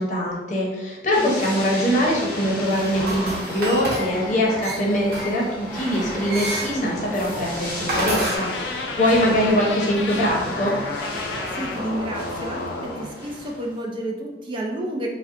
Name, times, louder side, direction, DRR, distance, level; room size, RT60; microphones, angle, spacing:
voice 1, 0.0-10.7, equal, 45° left, -3 dB, 0.7 m, -23 dB
sound 1, 1.1-13.8, left 1 dB, 10° left, 0.8 m, -34 dB
sound 2, 2.6-8.4, right 1 dB, 60° right, 0.9 m, -30 dB
voice 2, 6.6-6.9 11.5-15.1, right 1 dB, 30° right, 0 dB, 0.3 m, -30 dB
sound 3, 8.2-13.1, left 3 dB, 85° left, 0.4 m, -31 dB
3.6 x 2.1 x 2.5 m, 1.1 s
head